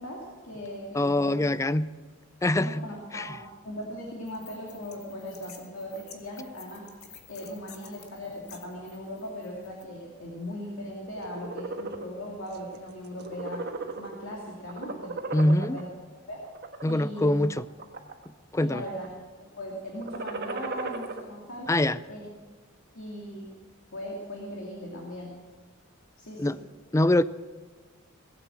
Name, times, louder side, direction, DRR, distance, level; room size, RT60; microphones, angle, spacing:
voice 1, 0.0-1.5 2.6-3.4 3.6-6.9 7.3-13.7 13.9-15.9 16.3-16.4 16.9-17.3 18.6-19.1 19.4-21.7 22.1-22.3 22.9-23.5 23.9-25.3 26.2-26.6, equal, 65° left, 2.6 m, -39 dB
voice 2, 0.9-1.9 2.4-2.8 3.1-3.3 15.3-15.8 16.8-17.6 18.5-18.8 21.7-22.0 26.4-26.6 26.9-27.2, left 1 dB, 15° left, 0.4 m, -24 dB
sound 1, 4.3-9.8, left 8 dB, 85° left, 1.8 m, -51 dB
sound 2, 11.1-12.1 12.5-12.8 13.1-14.3 14.7-15.8 16.4-16.9 17.5-18.3 18.5-19.1 19.9-21.2, right 3 dB, 50° right, 1.4 m, -36 dB
19.5 x 8.3 x 7.6 m
head